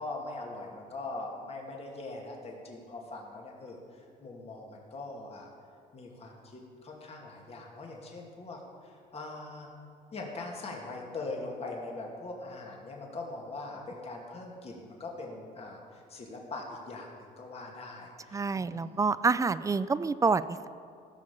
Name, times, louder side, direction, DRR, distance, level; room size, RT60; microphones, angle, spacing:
voice 1, 0.0-5.5 5.9-9.7 10.1-19.1, left 2 dB, 35° left, 0 dB, 2.3 m, -42 dB
voice 2, 18.3-20.7, right 4 dB, 20° right, 15 dB, 0.4 m, -27 dB
15.5 x 6.5 x 7.1 m, 2.4 s
cardioid pair, 110°, 17 cm